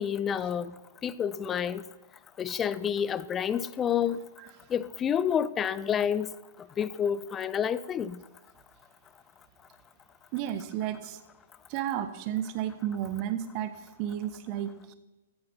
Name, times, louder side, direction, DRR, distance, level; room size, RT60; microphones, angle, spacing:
voice 1, 0.0-1.8 2.4-4.2 4.7-6.3 6.8-8.2, left 8 dB, 20° left, 0.5 m, -29 dB
voice 2, 10.3-11.2 11.7-13.7 14.0-14.9, right 11 dB, 35° right, 1.1 m, -32 dB
14.5 x 7.7 x 5.6 m
figure-of-eight pair, 110°, 0 cm